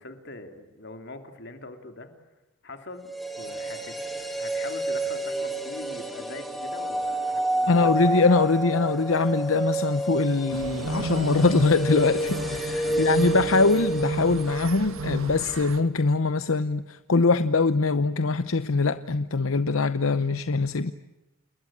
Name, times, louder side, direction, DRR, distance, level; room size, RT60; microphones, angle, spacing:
voice 1, 0.0-2.1 2.6-4.0 4.4-8.2 12.8-13.1, left 2 dB, 55° left, 6 dB, 3.1 m, -42 dB
sound 1, 3.0-15.1 15.4-15.5, right 2 dB, ahead, 2.8 m, -29 dB
voice 2, 7.7-20.9, left 3 dB, 80° left, 12 dB, 0.8 m, -23 dB
sound 2, 10.5-15.8, right 3 dB, 85° right, 1.7 m, -34 dB
29.0 x 21.5 x 8.7 m, 1.0 s
head